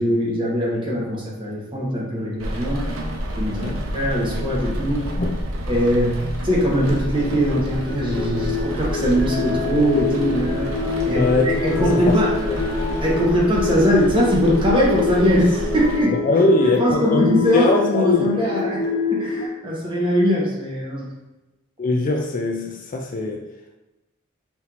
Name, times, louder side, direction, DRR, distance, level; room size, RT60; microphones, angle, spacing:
voice 1, 0.0-2.9 3.4-5.1 5.7-10.7 11.0-12.3 13.0-16.2 16.6-18.8 19.1-21.1, equal, 25° right, -4 dB, 1.1 m, -21 dB
Rain, 2.4-16.0, equal, 65° right, 0.7 m, -29 dB
sound 1, 7.9-19.5, left 5 dB, 60° left, 0.9 m, -26 dB
voice 2, 11.1-12.2 16.2-18.3 21.8-23.5, left 2 dB, 40° left, 2 dB, 0.4 m, -21 dB
5.7 x 2.7 x 3.0 m, 1.0 s
head